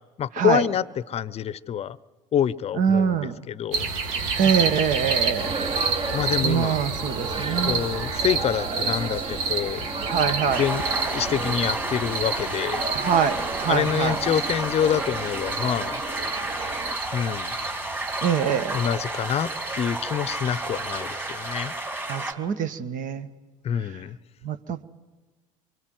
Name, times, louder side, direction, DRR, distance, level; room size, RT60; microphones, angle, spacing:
voice 1, 0.2-0.8 1.1-2.0 2.3-3.2 3.5-3.9 6.1-6.7 7.6-9.9 10.6-12.8 13.7-16.0 17.1-17.5 18.7-19.5 19.8-21.7 23.6-24.2, left 9 dB, 35° left, 0.8 m, -26 dB
voice 2, 2.7-3.4 4.3-5.5 6.4-7.8 10.0-10.6 12.9-14.2 18.2-18.8 22.1-23.3 23.7-24.0 24.4-24.8, right 7 dB, 50° right, 1.6 m, -24 dB
sound 1, 3.7-21.6, right 4 dB, 75° right, 2.3 m, -31 dB
sound 2, 5.4-17.0, right 3 dB, 35° right, 1.8 m, -33 dB
sound 3, 10.5-22.3, right 1 dB, 10° right, 3.0 m, -32 dB
26.0 x 23.5 x 7.9 m
hypercardioid pair, 80°, 17 cm